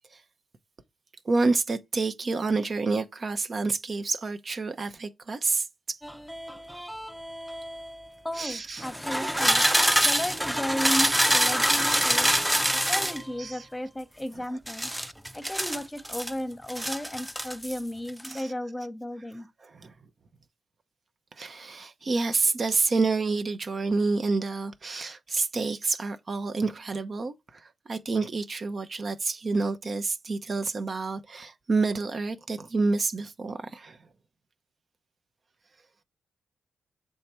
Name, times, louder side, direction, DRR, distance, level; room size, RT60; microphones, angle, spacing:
voice 1, 1.2-6.0 8.3-8.9 9.2-10.1 11.9-12.9 13.4-13.7 14.3-14.4 18.3-18.5 19.6-19.9 21.4-34.0, right 3 dB, 45° right, 0.6 m, -29 dB
sound 1, 6.0-7.9 8.8-13.2 14.7-16.3 16.7-17.8 18.1-18.4, equal, 5° right, 0.6 m, -26 dB
voice 2, 8.2-9.6 10.0-12.3 12.7-14.9 15.3-19.5, left 1 dB, 15° left, 1.0 m, -34 dB
6.6 x 3.4 x 4.3 m
cardioid pair, 75°, 0 cm